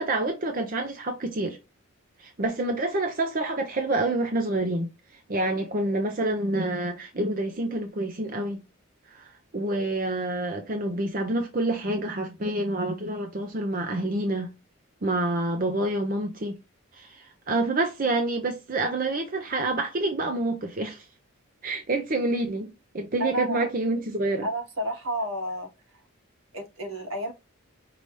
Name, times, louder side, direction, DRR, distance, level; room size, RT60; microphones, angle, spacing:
voice 1, 0.0-1.6 2.2-4.9 5.3-8.6 9.1-14.5 15.0-16.5 16.9-21.1 21.6-24.5, right 2 dB, 40° right, 0.7 m, -27 dB
voice 2, 23.2-23.7 24.4-25.7 26.5-27.3, equal, 75° right, 1.5 m, -30 dB
5.3 x 2.9 x 3.2 m
head